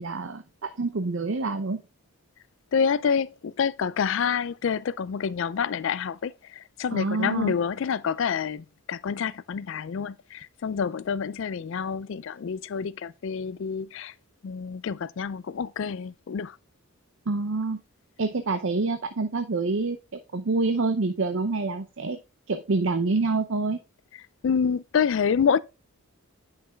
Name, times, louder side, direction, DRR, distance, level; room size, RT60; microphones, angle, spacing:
voice 1, 0.0-1.8 6.9-7.5 17.3-17.8 18.2-20.0 20.3-22.2 22.5-23.8, right 3 dB, 55° right, 0.6 m, -27 dB
voice 2, 2.7-14.1 14.4-16.6 24.4-25.6, left 6 dB, 55° left, 0.3 m, -27 dB
9.6 x 5.8 x 2.3 m
head